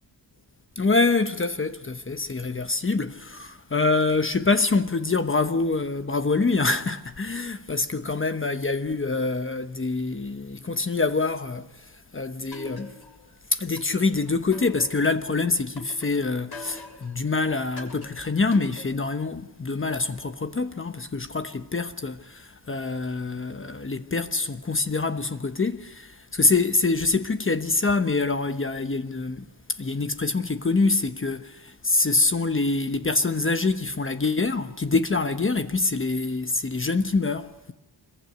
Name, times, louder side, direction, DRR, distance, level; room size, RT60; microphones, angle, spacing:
voice 1, 0.8-12.9 13.5-37.7, left 3 dB, 25° left, 1.1 m, -25 dB
sound 1, 12.5-13.3 13.8-15.2 15.8-17.2 17.8-19.2, left 2 dB, 55° left, 6.5 m, -42 dB
26.0 x 21.5 x 9.4 m
wide cardioid pair, 160°, 45 cm